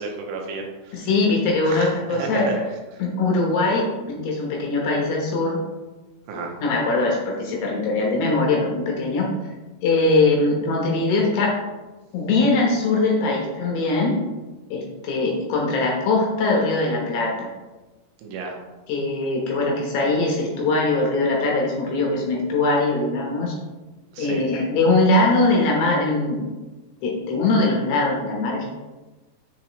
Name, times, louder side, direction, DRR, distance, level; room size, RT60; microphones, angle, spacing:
voice 1, 0.0-1.1 1.7-1.9 2.2-2.6 6.3-6.5 18.2-18.6 24.1-24.4, right 4 dB, 85° right, 1 dB, 3.6 m, -31 dB
voice 2, 0.9-2.5 3.0-5.6 6.6-9.3 9.8-11.5 12.1-14.2 14.7-17.5 18.9-23.5 24.2-26.5 27.0-28.7, left 2 dB, 70° left, -1 dB, 2.8 m, -21 dB
7.3 x 7.2 x 3.1 m, 1.2 s
omnidirectional pair, 5.5 m